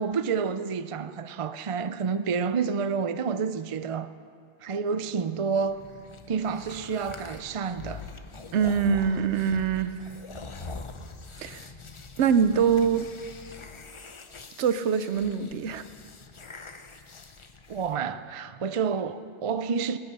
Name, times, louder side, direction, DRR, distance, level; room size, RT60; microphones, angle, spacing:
voice 1, 0.0-4.1 4.6-5.8 6.3-8.0 17.7-20.0, right 6 dB, 50° right, 0.4 m, -29 dB
sound 1, 5.6-18.0, left 4 dB, 30° left, 0.6 m, -44 dB
voice 2, 8.5-10.0 11.4-11.6 12.2-13.1 14.6-15.9, right 7 dB, 75° right, 1.0 m, -24 dB
19.5 x 9.4 x 6.8 m
omnidirectional pair, 1.2 m